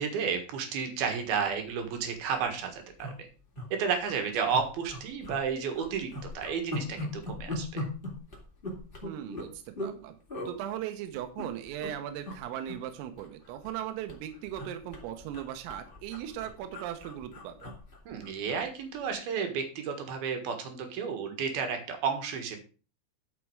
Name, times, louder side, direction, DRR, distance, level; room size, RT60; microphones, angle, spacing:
voice 1, 0.0-3.3 3.7-7.8 18.1-22.6, right 6 dB, 60° right, 5 dB, 2.9 m, -32 dB
sound 1, 1.5-1.7 2.0-2.1 2.3-2.5 3.0-3.7 4.0-4.1 4.5-5.4 5.7-10.0 10.3-10.5 11.1-11.9 12.2-12.4 12.7-13.8 14.1-18.6 19.0-19.1, left 1 dB, 45° left, 0.6 m, -39 dB
voice 2, 9.0-10.2 10.5-17.7, right 11 dB, 85° right, 8 dB, 3.7 m, -38 dB
11.5 x 6.1 x 4.8 m, 0.36 s
omnidirectional pair, 5.9 m